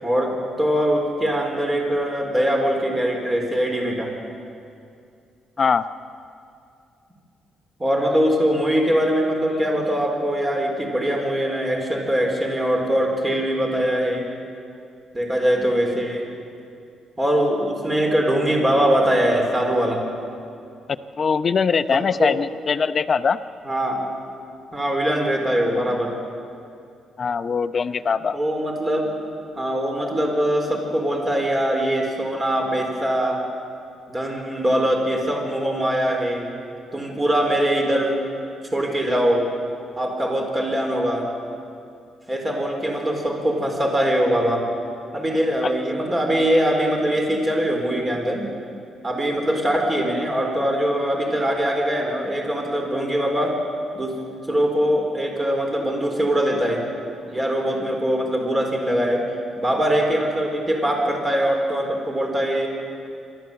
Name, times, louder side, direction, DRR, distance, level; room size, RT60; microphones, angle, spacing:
voice 1, 0.0-4.1 7.8-14.2 15.1-16.3 17.2-20.0 21.9-22.3 23.6-24.0 24.7-26.1 28.3-29.1 29.6-33.4 34.1-36.5 36.9-38.1 38.7-39.5 40.0-41.3 42.3-44.6 45.1-48.4 49.0-53.6 53.9-54.2 54.5-56.9 57.3-59.3 59.6-62.7, equal, 20° right, 1 dB, 4.1 m, -22 dB
voice 2, 21.2-23.4 27.2-28.4 45.6-45.7, left 5 dB, 45° left, 12 dB, 0.7 m, -21 dB
26.0 x 12.5 x 7.9 m, 2.5 s
cardioid pair, 90°, 0 cm